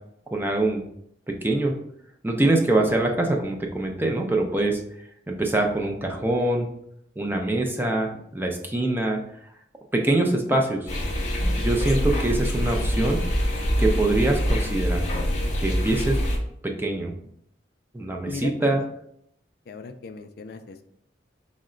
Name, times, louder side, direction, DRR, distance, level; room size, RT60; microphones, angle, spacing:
voice 1, 0.3-0.8 1.3-1.8 2.2-4.8 5.3-6.7 7.2-9.2 9.9-10.9 11.6-13.2 13.8-15.1 15.6-16.2 16.6-17.1 17.9-18.8, right 2 dB, 10° right, 1 dB, 0.5 m, -24 dB
sound 1, 10.9-16.4, equal, 40° left, 0.8 m, -25 dB
voice 2, 18.2-18.9 19.7-20.8, left 4 dB, 55° left, 8 dB, 0.3 m, -37 dB
4.7 x 2.1 x 3.7 m, 0.72 s
head